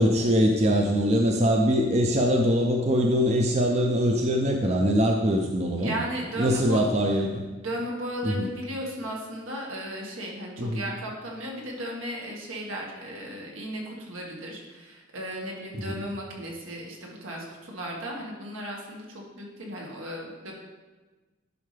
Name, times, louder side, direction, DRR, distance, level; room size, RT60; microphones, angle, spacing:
voice 1, 0.0-6.0 6.4-7.4 8.2-8.5 10.6-10.8, equal, 30° right, 2 dB, 0.5 m, -23 dB
voice 2, 5.8-6.8 7.5-20.5, equal, 85° right, -2 dB, 1.8 m, -35 dB
11.0 x 5.5 x 3.4 m, 1.2 s
head